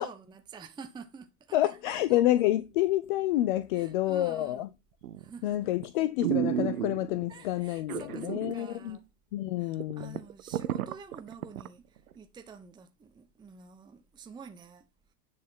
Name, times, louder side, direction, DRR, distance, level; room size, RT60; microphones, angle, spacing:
voice 1, 0.0-2.2 3.7-4.7 5.2-5.7 7.3-9.1 9.6-14.9, right 5 dB, 10° right, 0.7 m, -49 dB
voice 2, 1.5-4.7 5.4-9.0 9.3-10.2, left 14 dB, 35° left, 0.4 m, -28 dB
sound 1, 5.0-5.4 5.8-5.9 6.2-7.3 7.9-8.6 8.9-9.0 9.5-9.6 9.8-11.7 12.1-12.2, right 11 dB, 65° right, 0.8 m, -32 dB
9.6 x 4.1 x 5.6 m
figure-of-eight pair, 85°, 47 cm